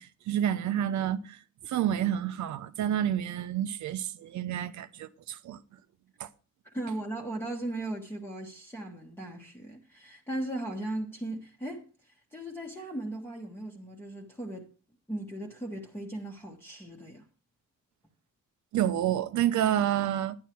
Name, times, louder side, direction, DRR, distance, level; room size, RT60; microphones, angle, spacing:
voice 1, 0.0-5.6 6.2-6.3 18.7-20.4, right 11 dB, 65° right, 0.9 m, -29 dB
voice 2, 6.6-11.9 12.3-14.7 15.1-17.3, right 1 dB, 5° left, 1.2 m, -37 dB
11.0 x 10.5 x 4.5 m
cardioid pair, 175°, 31 cm